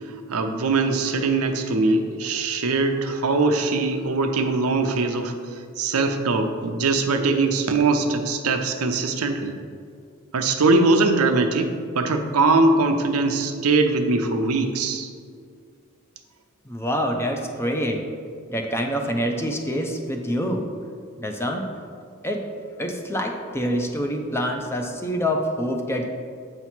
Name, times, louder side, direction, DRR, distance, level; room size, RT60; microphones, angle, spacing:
voice 1, 0.3-5.3 5.8-9.5 10.3-15.1, right 3 dB, 90° right, 6 dB, 0.6 m, -21 dB
voice 2, 16.7-18.1 18.5-20.7 21.2-21.6 22.2-22.4 22.8-26.1, equal, 10° left, 3 dB, 0.5 m, -26 dB
7.9 x 2.9 x 5.9 m, 2.2 s
head